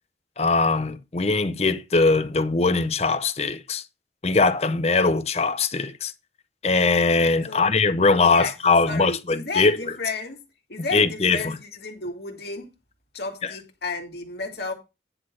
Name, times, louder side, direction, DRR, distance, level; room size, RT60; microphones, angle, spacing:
voice 1, 0.4-3.8 4.2-6.1 6.6-9.8 10.9-11.5 13.4-13.5, left 3 dB, 35° left, 0.7 m, -21 dB
voice 2, 8.9-10.4 10.7-12.7 13.1-14.7, left 3 dB, 65° left, 2.2 m, -32 dB
10.0 x 4.0 x 6.2 m
head